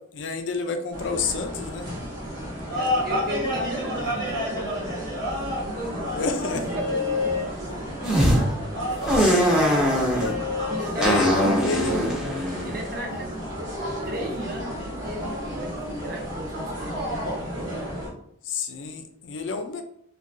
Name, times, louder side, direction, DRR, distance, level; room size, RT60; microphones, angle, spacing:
voice 1, 0.1-1.9 6.2-6.6 9.2-9.7 11.0-11.9 18.5-19.8, left 4 dB, 65° left, 6 dB, 0.4 m, -29 dB
sound 1, 0.9-18.1, left 1 dB, 70° right, 1.0 m, -30 dB
voice 2, 2.7-4.8 5.5-7.7 8.5-9.0 10.7-13.3 14.0-17.3, right 1 dB, 50° right, -1 dB, 0.6 m, -35 dB
sound 2, 8.0-8.4 9.1-10.3 11.0-13.4, equal, 5° right, 0.4 m, -22 dB
2.7 x 2.3 x 2.5 m, 0.69 s
head